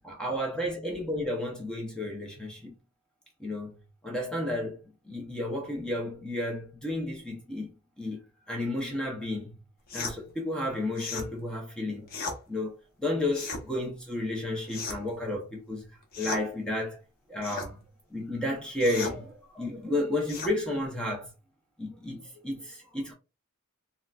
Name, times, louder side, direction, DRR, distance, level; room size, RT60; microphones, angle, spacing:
voice 1, 0.0-2.7 3.4-3.8 4.0-7.7 8.0-8.2 8.5-9.5 9.9-12.1 12.5-12.7 13.0-15.9 16.2-17.0 17.3-17.8 18.1-21.3 21.8-23.1, left 1 dB, 5° left, 0.6 m, -32 dB
sound 1, 9.9-10.2 11.0-11.3 12.1-12.4 13.3-13.6 14.7-15.1 16.1-16.5 17.4-17.7 18.8-19.2 20.3-20.6, left 3 dB, 40° left, 0.8 m, -35 dB
3.8 x 2.1 x 2.3 m
head